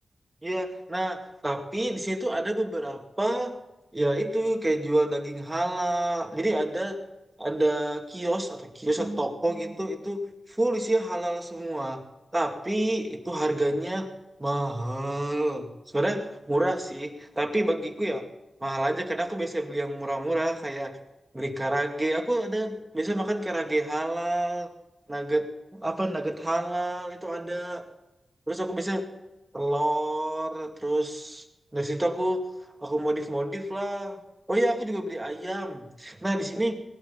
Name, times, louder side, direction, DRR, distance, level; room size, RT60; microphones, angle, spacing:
voice 1, 0.4-1.2 1.4-3.6 3.9-7.0 7.4-12.0 12.3-14.1 14.4-18.3 18.6-21.0 21.3-24.7 25.1-25.5 25.7-27.8 28.5-29.1 29.5-31.4 31.7-32.5 32.8-34.2 34.5-36.7, right 1 dB, 15° right, 3 dB, 2.2 m, -28 dB
19.5 x 11.5 x 5.7 m, 0.97 s
wide cardioid pair, 105°, 0 cm